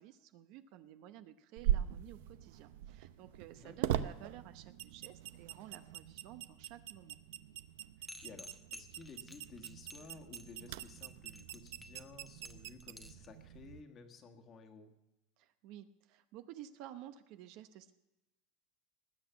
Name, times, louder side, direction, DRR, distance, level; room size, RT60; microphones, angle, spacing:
voice 1, 0.0-7.2 15.4-17.9, right 12 dB, 50° right, 11 dB, 0.8 m, -52 dB
sound 1, 1.6-13.8, right 12 dB, 80° right, 0.7 m, -41 dB
voice 2, 3.5-4.0 8.0-14.9, left 5 dB, 25° left, 5 dB, 1.5 m, -55 dB
sound 2, 8.1-13.3, left 1 dB, 5° left, 0.9 m, -53 dB
19.5 x 8.3 x 6.9 m, 1.0 s
supercardioid pair, 165°, 0 cm